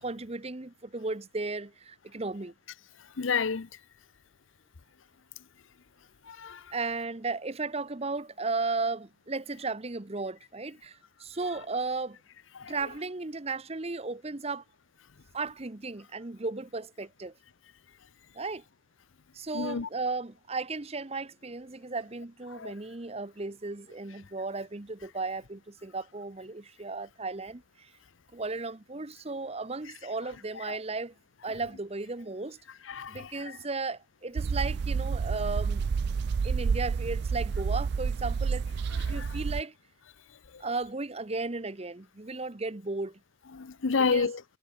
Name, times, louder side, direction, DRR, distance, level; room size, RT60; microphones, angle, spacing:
voice 1, 0.0-2.5 6.7-12.2 12.6-14.6 15.3-17.3 18.3-18.6 19.3-27.9 28.3-31.1 31.4-32.6 33.1-35.8 36.4-38.6 38.9-39.7 40.6-43.2 44.0-44.3, right 3 dB, 30° right, 0.9 m, -35 dB
voice 2, 3.2-3.7 6.3-6.6 12.6-12.7 19.5-19.9 22.5-22.7 30.7-30.8 32.9-33.3 39.1-39.3 43.5-44.4, left 5 dB, 80° left, 0.7 m, -29 dB
sound 1, 34.4-39.6, right 5 dB, 60° right, 0.3 m, -29 dB
head